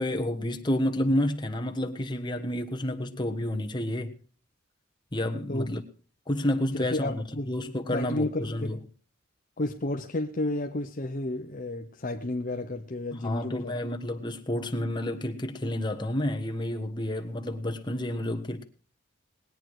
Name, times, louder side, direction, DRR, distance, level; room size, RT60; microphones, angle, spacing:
voice 1, 0.0-4.2 5.1-5.8 6.3-8.8 13.2-18.6, left 1 dB, 20° left, 1.3 m, -30 dB
voice 2, 6.7-7.5 7.9-8.8 9.6-13.7, left 2 dB, 40° left, 0.8 m, -32 dB
20.0 x 9.2 x 4.8 m
head